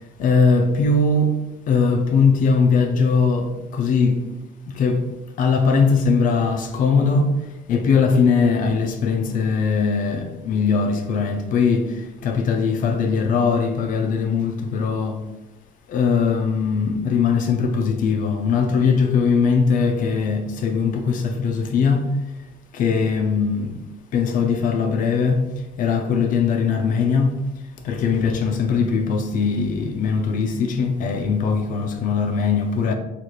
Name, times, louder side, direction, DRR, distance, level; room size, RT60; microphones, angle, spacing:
voice 1, 0.2-1.3 1.7-4.2 4.7-5.0 5.4-7.3 7.7-15.2 15.9-22.1 22.7-23.8 24.1-25.5 25.8-27.4 27.8-32.9, left 5 dB, 60° left, 0.4 m, -20 dB
4.0 x 2.4 x 3.1 m
cardioid pair, 100°, 15 cm